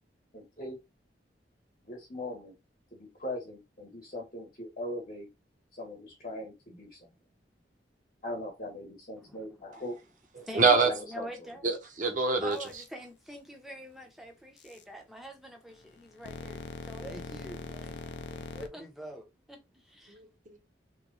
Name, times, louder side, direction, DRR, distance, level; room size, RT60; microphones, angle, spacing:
voice 1, 0.3-0.8 1.8-2.5 2.9-5.3 5.7-7.0 8.2-9.9 10.8-11.3, left 1 dB, 40° left, 1.2 m, -40 dB
voice 2, 9.2-9.7 10.4-11.6 12.4-20.2, equal, ahead, 0.8 m, -46 dB
voice 3, 10.4-10.9 11.6-12.6 20.1-20.6, right 4 dB, 45° right, 0.8 m, -26 dB
sound 1, 12.5-12.9 14.6-14.8 15.7-18.7, left 3 dB, 80° left, 0.5 m, -42 dB
3.0 x 2.2 x 3.9 m
head